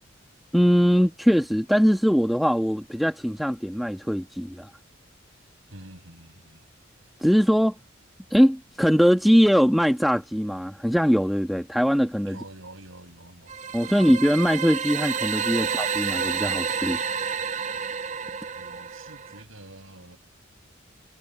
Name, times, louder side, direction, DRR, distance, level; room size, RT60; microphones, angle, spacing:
voice 1, 0.5-4.7 7.2-7.8 8.3-12.4 13.7-17.0, equal, ahead, 1.6 m, -21 dB
voice 2, 5.7-6.7 12.3-13.6 13.8-14.1 18.6-20.2, right 1 dB, 75° right, 7.0 m, -47 dB
sound 1, 13.5-19.4, right 6 dB, 35° right, 0.7 m, -29 dB
head